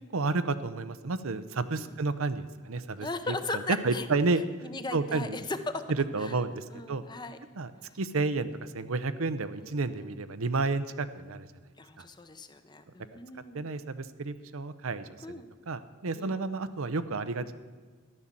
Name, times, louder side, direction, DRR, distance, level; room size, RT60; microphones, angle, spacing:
voice 1, 0.0-4.4 4.9-5.4 5.9-7.0 7.6-7.7 8.0-11.5 12.0-12.1 13.5-17.5, right 3 dB, 80° right, 12 dB, 0.7 m, -31 dB
voice 2, 3.0-4.1 4.6-5.9 6.2-6.3 6.7-7.4 9.6-10.2 11.8-13.7 15.2-15.5 16.1-16.4, left 2 dB, 20° left, 9 dB, 0.7 m, -38 dB
14.0 x 11.0 x 7.4 m, 1.5 s
head